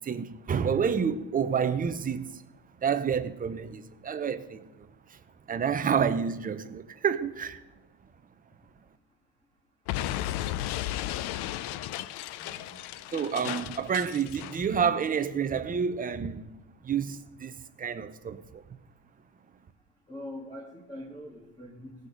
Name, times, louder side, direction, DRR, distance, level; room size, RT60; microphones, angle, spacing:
voice 1, 0.0-2.4 2.8-5.2 5.5-7.6 13.1-16.5 16.8-18.6, right 7 dB, 20° right, 0.6 m, -29 dB
Explosion, 9.9-14.7, left 13 dB, 55° left, 0.5 m, -34 dB
voice 2, 12.4-12.7 20.1-21.9, left 1 dB, 10° left, 1.6 m, -43 dB
17.0 x 6.4 x 5.0 m
cardioid pair, 150°, 50 cm